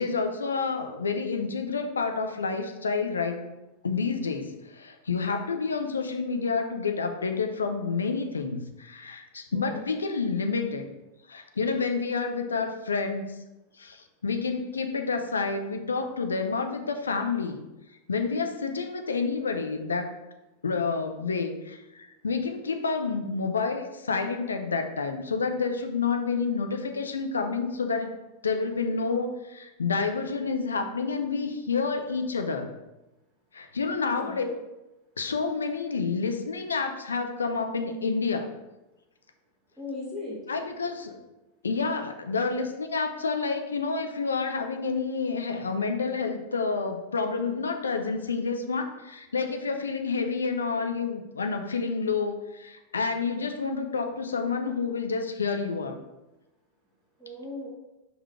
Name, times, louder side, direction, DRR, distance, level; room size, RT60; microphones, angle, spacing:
voice 1, 0.0-3.5 3.8-10.9 11.3-13.3 13.8-17.6 18.1-20.1 20.6-28.1 28.4-32.7 33.5-34.5 35.2-38.5 40.5-41.2 41.6-56.0, left 4 dB, 70° left, 6 dB, 0.7 m, -29 dB
voice 2, 9.5-9.8 34.2-34.5 39.8-40.4 57.2-57.7, left 2 dB, 5° right, -7 dB, 1.6 m, -37 dB
5.3 x 4.9 x 4.8 m, 0.99 s
figure-of-eight pair, 90°, 0 cm